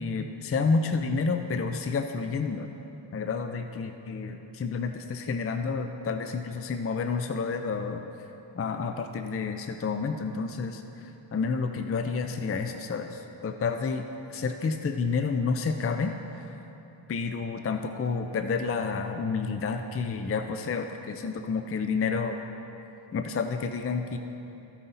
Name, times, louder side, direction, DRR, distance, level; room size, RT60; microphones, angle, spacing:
voice 1, 0.0-2.7 3.1-8.0 8.6-16.5 17.1-22.4 23.1-24.2, left 4 dB, 30° left, 7 dB, 0.5 m, -30 dB
14.0 x 5.5 x 4.0 m, 3.0 s
cardioid pair, 55°, 48 cm